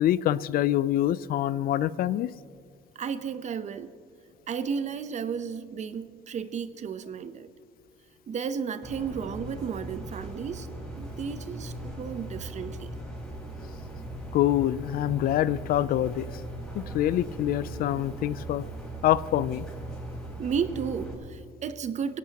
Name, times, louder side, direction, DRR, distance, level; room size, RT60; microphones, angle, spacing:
voice 1, 0.0-2.3 14.3-16.3 16.7-18.6 19.0-19.7, left 12 dB, 60° left, 18 dB, 0.4 m, -25 dB
voice 2, 2.9-3.9 4.5-7.5 8.3-10.7 10.9-12.9 20.4-22.2, right 6 dB, 45° right, 12 dB, 0.8 m, -33 dB
sound 1, 8.8-21.1, right 2 dB, 5° left, 5.1 m, -39 dB
22.5 x 17.0 x 2.9 m, 2.1 s
cardioid pair, 110°, 17 cm